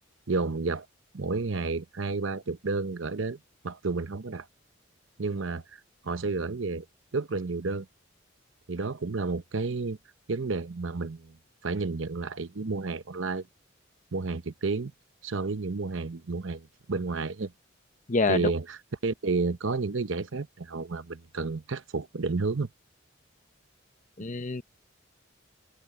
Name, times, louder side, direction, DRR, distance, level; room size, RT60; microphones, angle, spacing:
voice 1, 0.3-0.9 1.1-3.4 3.6-4.5 5.2-6.9 7.1-7.9 8.7-10.0 10.3-11.4 11.6-13.5 14.1-14.9 15.2-17.5 18.3-18.8 19.0-22.7, right 3 dB, 70° right, 0.8 m, -31 dB
voice 2, 18.1-18.5 24.2-24.6, left 3 dB, 40° left, 0.9 m, -26 dB
open air
head